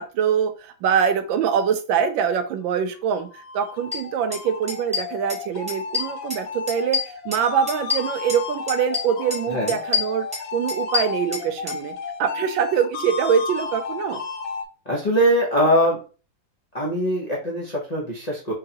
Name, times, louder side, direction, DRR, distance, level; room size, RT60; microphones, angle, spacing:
voice 1, 0.0-10.3 10.5-14.2, right 7 dB, 75° right, 9 dB, 1.3 m, -24 dB
sound 1, 2.9-14.6, left 5 dB, 85° left, 1.5 m, -33 dB
sound 2, 3.9-4.0 4.3-4.4 4.7-5.4 5.7-6.4 6.7-8.4 8.7-9.4 9.7-11.8, left 5 dB, 5° right, 1.3 m, -27 dB
voice 2, 9.5-9.8 14.9-16.0 16.7-18.5, equal, 55° left, -4 dB, 0.4 m, -22 dB
3.9 x 3.4 x 2.8 m, 0.36 s
omnidirectional pair, 2.2 m